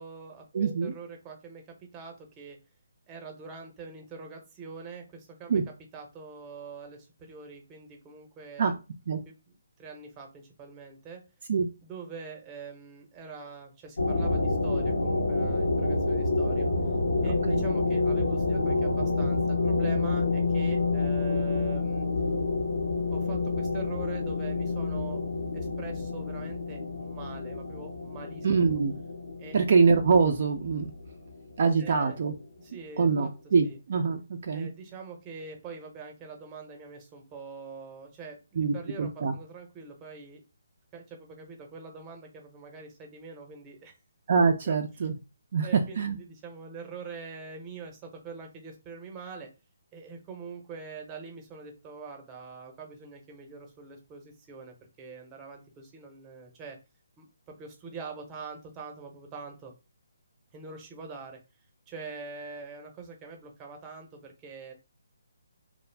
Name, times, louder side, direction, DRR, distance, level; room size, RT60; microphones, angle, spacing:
voice 1, 0.0-0.5 0.8-2.6 3.1-5.5 5.9-8.7 9.3-11.2 11.8-16.7 17.2-22.1 23.1-25.2 25.5-28.5 29.4-29.6 31.8-32.2 32.6-33.3 33.7-33.8 34.5-40.4 40.9-44.0 44.6-44.7 45.6-49.5 49.9-56.8 57.2-59.7 60.5-61.4 61.9-64.7, right 5 dB, 20° right, 3 dB, 0.7 m, -44 dB
voice 2, 0.5-0.9 5.5-5.6 8.6-8.7 9.1-9.2 11.5-11.7 17.2-17.7 28.4-29.0 29.5-30.9 31.6-32.3 33.0-34.7 38.6-39.3 44.3-45.1 45.5-45.7 46.0-46.2, right 5 dB, 55° right, 5 dB, 0.3 m, -24 dB
sound 1, 14.0-31.4, left 3 dB, 80° left, 0.6 m, -28 dB
2.4 x 2.0 x 3.2 m, 0.30 s
figure-of-eight pair, 150°, 0 cm